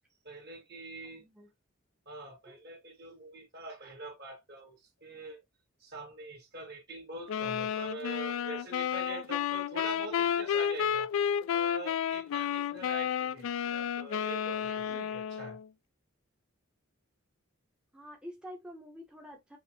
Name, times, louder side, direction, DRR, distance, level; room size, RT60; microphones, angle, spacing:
voice 1, 0.2-1.2 2.1-5.4 5.8-11.1 11.5-15.6, right 2 dB, 55° right, 1.8 m, -44 dB
voice 2, 1.0-1.5 2.5-2.6 14.9-15.1 17.9-19.6, equal, 5° right, 0.7 m, -48 dB
sound 1, 7.3-15.7, left 8 dB, 70° left, 0.3 m, -31 dB
5.6 x 2.1 x 2.8 m
head